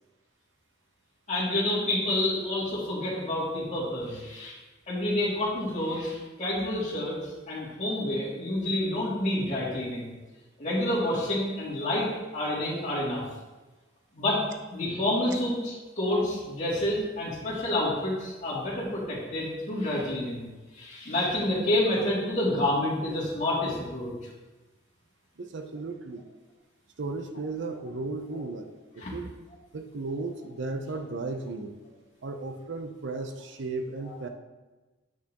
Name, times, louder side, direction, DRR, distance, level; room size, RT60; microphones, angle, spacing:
voice 1, 1.3-4.6 4.9-10.1 10.6-12.1 12.3-13.2 14.1-14.4 14.7-20.5 20.7-24.1 28.3-28.4 29.0-29.1 34.0-34.1, left 1 dB, 35° left, -7 dB, 2.4 m, -28 dB
voice 2, 25.4-26.2 27.0-28.7 28.9-29.3 29.7-31.7 32.2-34.3, right 3 dB, 65° right, 7 dB, 0.6 m, -35 dB
8.5 x 5.9 x 2.9 m, 1.2 s
head